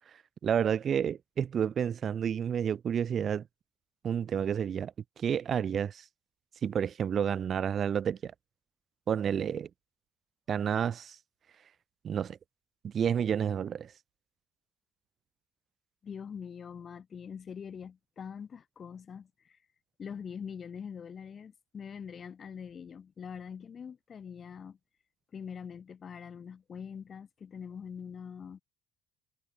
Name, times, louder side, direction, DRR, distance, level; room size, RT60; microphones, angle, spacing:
voice 1, 0.1-3.4 4.0-6.0 6.6-8.3 9.1-9.7 10.5-11.2 12.0-12.4 12.8-13.9, right 8 dB, 40° right, 0.7 m, -30 dB
voice 2, 16.0-19.6 20.0-24.8 25.3-28.6, left 7 dB, 40° left, 3.6 m, -43 dB
figure-of-eight pair, 55°, 0 cm